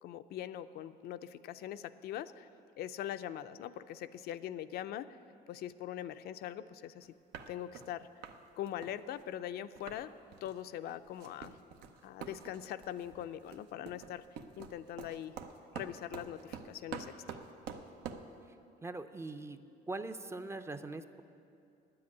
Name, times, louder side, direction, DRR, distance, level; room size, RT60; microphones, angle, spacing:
voice 1, 0.0-2.5 2.8-5.2 5.5-7.1 7.5-8.1 8.6-10.1 10.4-11.6 12.0-14.2 14.6-15.4 15.7-17.4, left 11 dB, 70° left, 12 dB, 0.5 m, -42 dB
sound 1, 7.0-7.1 7.3-7.9 8.2-8.4 8.7-10.0 10.3-10.6 10.9-18.3, right 7 dB, 80° right, 0.8 m, -47 dB
voice 2, 18.8-19.6 19.9-21.2, right 2 dB, 15° right, 9 dB, 0.5 m, -41 dB
9.9 x 7.8 x 9.6 m, 2.7 s
cardioid pair, 110°, 17 cm